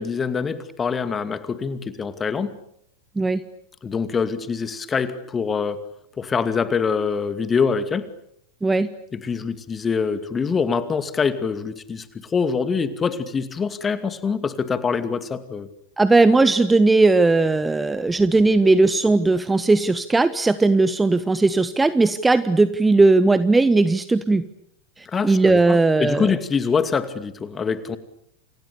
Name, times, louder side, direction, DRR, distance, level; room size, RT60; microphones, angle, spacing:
voice 1, 0.0-2.6 3.8-5.8 6.2-8.1 9.1-15.7 25.1-28.0, left 5 dB, 20° left, 12 dB, 2.4 m, -24 dB
voice 2, 16.0-24.4 25.0-26.4, right 3 dB, 10° right, 15 dB, 1.1 m, -18 dB
29.5 x 29.0 x 7.0 m, 0.71 s
figure-of-eight pair, 90°, 0 cm